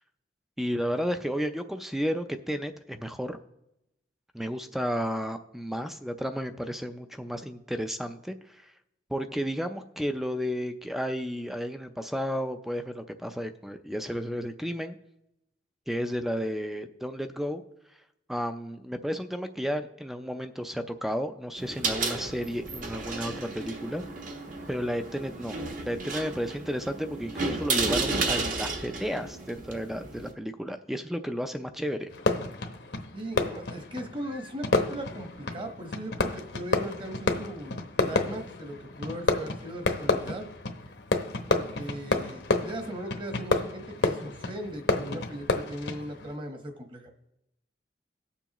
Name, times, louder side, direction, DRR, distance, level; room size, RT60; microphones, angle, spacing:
voice 1, 0.6-3.4 4.3-8.7 9.1-15.0 15.9-17.6 18.3-24.0 24.7-25.6 25.9-32.1, equal, ahead, 8 dB, 0.4 m, -32 dB
sound 1, 21.6-30.3, right 3 dB, 50° right, 1.1 m, -33 dB
Fireworks, 32.1-46.4, left 3 dB, 70° left, 0.9 m, -30 dB
voice 2, 33.1-40.5 41.5-47.1, right 1 dB, 30° right, 3 dB, 1.2 m, -38 dB
18.5 x 7.1 x 3.0 m, 0.86 s
head